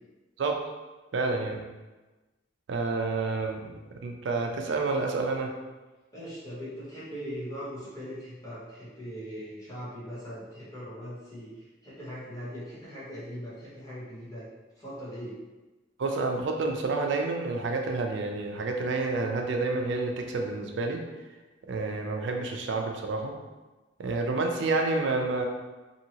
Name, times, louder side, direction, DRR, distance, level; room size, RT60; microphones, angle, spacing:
voice 1, 1.1-1.6 2.7-3.6 4.0-5.5 16.0-21.0 21.7-23.3 24.0-25.5, right 3 dB, 80° right, 2 dB, 0.4 m, -29 dB
voice 2, 6.1-14.5 14.8-15.4, equal, 20° left, -10 dB, 1.0 m, -40 dB
2.7 x 2.7 x 2.8 m, 1.2 s
head